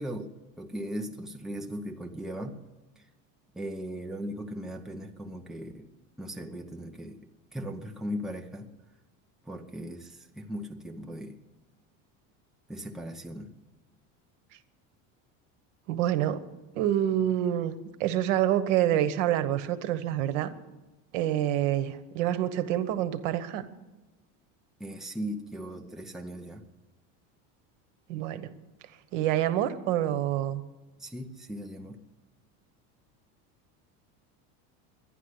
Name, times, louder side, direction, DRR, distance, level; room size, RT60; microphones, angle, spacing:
voice 1, 0.0-2.6 3.5-5.9 6.2-7.2 7.5-8.7 9.5-11.4 12.7-13.5 24.8-26.6 31.0-32.0, equal, ahead, 2 dB, 0.8 m, -38 dB
voice 2, 15.9-16.4 16.8-20.5 21.1-23.6 28.1-28.5 29.1-30.6, right 12 dB, 75° right, 13 dB, 1.2 m, -27 dB
11.5 x 11.0 x 9.7 m, 1.1 s
cardioid pair, 160°, 37 cm